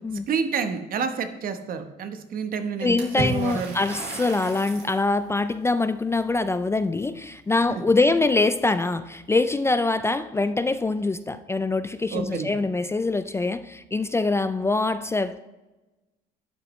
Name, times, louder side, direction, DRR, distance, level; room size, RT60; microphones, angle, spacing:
voice 1, 0.3-3.7 7.7-7.8 12.1-12.5, right 6 dB, 60° right, 8 dB, 1.1 m, -29 dB
voice 2, 2.8-15.4, left 3 dB, 15° left, 12 dB, 0.3 m, -24 dB
Water / Splash splatter, 3.0-5.1, right 2 dB, 75° right, 2.5 m, -33 dB
11.5 x 8.1 x 3.1 m, 1.1 s
cardioid pair, 110°, 17 cm